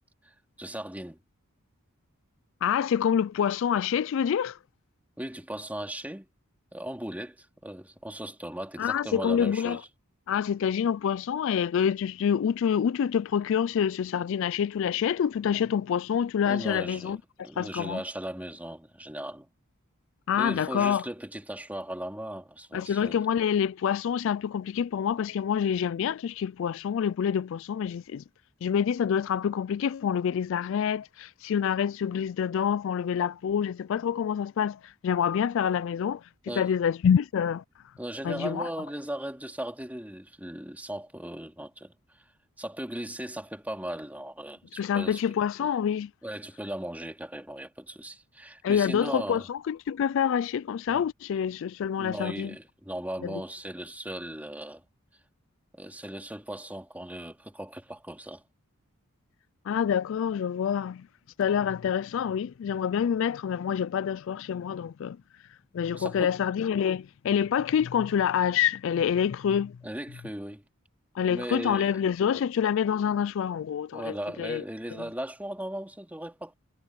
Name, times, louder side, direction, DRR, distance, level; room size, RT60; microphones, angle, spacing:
voice 1, 0.2-1.2 5.2-6.3 6.7-9.9 16.4-17.2 17.4-19.5 20.4-23.2 36.5-36.7 38.0-42.2 42.6-45.2 46.2-49.5 50.9-51.0 52.0-54.8 55.7-58.4 65.9-66.3 69.8-70.6 71.3-72.0 72.3-72.4 73.9-76.5, right 1 dB, 5° right, 2.8 m, -37 dB
voice 2, 2.6-4.6 8.8-9.8 10.3-17.2 17.6-18.0 20.3-21.0 22.7-28.2 28.6-37.6 38.2-38.7 44.8-46.1 48.6-52.5 53.2-53.4 59.7-61.1 61.4-65.2 65.7-69.8 71.1-74.6, left 8 dB, 60° left, 0.3 m, -27 dB
head